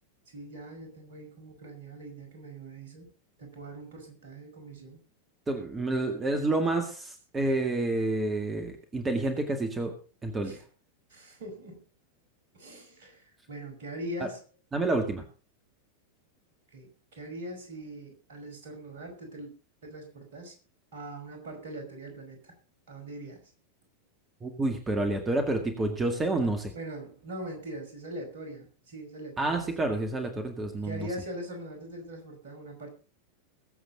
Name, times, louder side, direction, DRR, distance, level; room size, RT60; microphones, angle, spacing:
voice 1, 0.3-3.1 3.4-5.0 10.4-10.6 11.1-11.8 12.5-14.4 16.7-19.5 19.8-20.5 20.9-22.5 22.9-23.4 26.7-29.6 30.8-32.9, right 1 dB, 55° right, 4 dB, 5.4 m, -42 dB
voice 2, 5.5-9.9 10.2-10.6 14.2-14.3 14.7-15.2 24.4-26.7 29.4-31.1, right 2 dB, 15° right, 6 dB, 2.0 m, -29 dB
22.0 x 7.9 x 3.9 m, 0.37 s
figure-of-eight pair, 90°, 0 cm